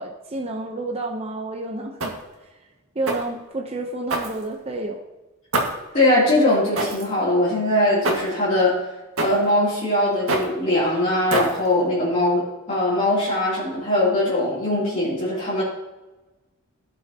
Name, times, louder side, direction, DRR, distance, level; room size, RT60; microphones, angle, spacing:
voice 1, 0.0-2.1 2.9-5.0, right 2 dB, 30° right, 1 dB, 0.8 m, -30 dB
sound 1, 2.0-2.4 3.1-3.4 4.1-4.8 5.5-5.9 6.7-7.1 8.0-8.4 9.2-9.5 10.3-10.6 11.3-11.7, right 2 dB, 75° right, 1.9 m, -26 dB
voice 2, 5.9-8.8 9.2-15.6, left 1 dB, 35° left, -10 dB, 3.2 m, -21 dB
16.5 x 6.4 x 2.9 m, 1.1 s
head